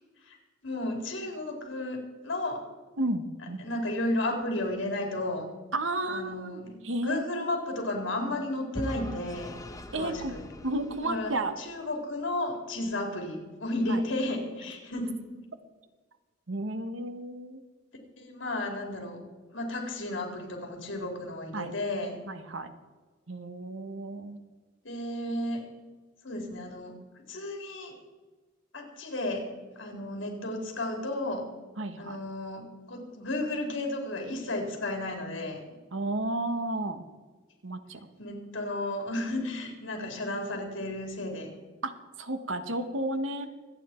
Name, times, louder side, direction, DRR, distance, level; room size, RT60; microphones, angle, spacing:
voice 1, 0.6-2.6 3.6-5.5 6.0-9.6 9.9-10.4 11.0-11.3 11.6-15.2 18.2-19.2 19.5-22.2 24.8-25.6 26.2-27.0 27.3-27.9 28.7-29.5 29.8-31.5 32.0-35.6 38.2-41.5, left 1 dB, 70° left, 2 dB, 3.8 m, -33 dB
voice 2, 3.0-3.6 5.7-7.6 9.9-10.3 10.6-11.5 13.9-14.0 16.5-17.6 21.5-21.7 22.3-22.7 23.3-24.4 30.0-30.1 31.8-32.2 35.9-37.0 37.6-38.0 41.8-41.9 42.2-43.5, right 1 dB, 90° right, 9 dB, 1.4 m, -32 dB
Vehicle / Engine, 8.7-11.8, equal, 20° left, 1.1 m, -41 dB
25.5 x 9.3 x 4.5 m, 1.3 s
head